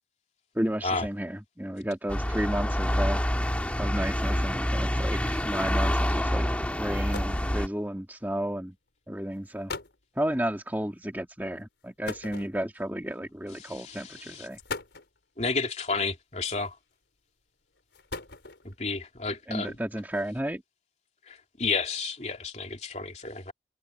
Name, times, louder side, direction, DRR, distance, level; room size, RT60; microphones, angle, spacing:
voice 1, 0.6-3.2 3.8-6.5 6.8-8.8 9.1-9.7 10.2-14.6 19.5-20.6, right 1 dB, 10° right, 1.9 m, -32 dB
sound 1, 2.1-7.7, equal, 10° left, 1.8 m, -27 dB
sound 2, 6.9-7.5 8.5-8.7 9.3-9.4 9.7-10.0 12.0-12.9 13.8-14.0 14.5-15.2 16.4-16.9 17.7-18.8, left 3 dB, 90° left, 4.9 m, -39 dB
voice 2, 13.6-14.5 15.4-16.7 18.6-19.8 21.3-23.5, left 4 dB, 40° left, 3.0 m, -31 dB
head